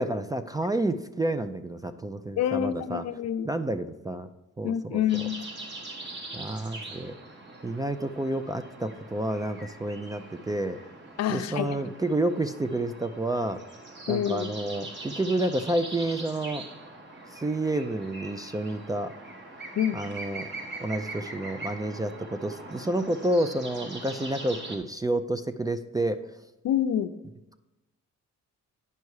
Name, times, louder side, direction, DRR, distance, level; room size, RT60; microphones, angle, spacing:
voice 1, 0.0-3.0 3.4-4.3 4.6-5.0 6.3-7.1 7.6-10.8 11.3-13.6 14.1-16.6 17.3-19.1 19.9-20.5 20.8-26.3, right 1 dB, 15° right, 9 dB, 0.3 m, -29 dB
voice 2, 2.4-3.5 4.6-5.4 11.2-11.7 14.1-14.5 19.8-20.0 26.6-27.1, left 10 dB, 65° left, 11 dB, 0.5 m, -27 dB
sound 1, 5.1-24.8, right 2 dB, 40° right, 1.3 m, -42 dB
9.4 x 5.5 x 4.7 m, 0.96 s
cardioid pair, 120°, 29 cm